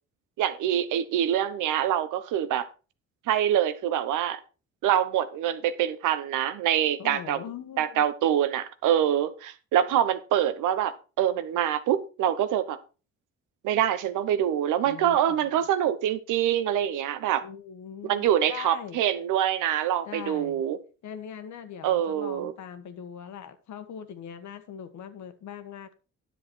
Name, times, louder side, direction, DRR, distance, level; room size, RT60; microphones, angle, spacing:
voice 1, 0.4-2.7 3.3-4.4 4.8-7.4 7.8-12.8 13.6-17.4 18.1-20.8 21.8-22.5, right 10 dB, 90° right, 1.0 m, -25 dB
voice 2, 7.0-8.1 14.8-15.5 17.4-19.0 20.0-20.6 21.0-25.9, left 8 dB, 70° left, 1.5 m, -41 dB
10.5 x 7.2 x 4.5 m
cardioid pair, 90°, 30 cm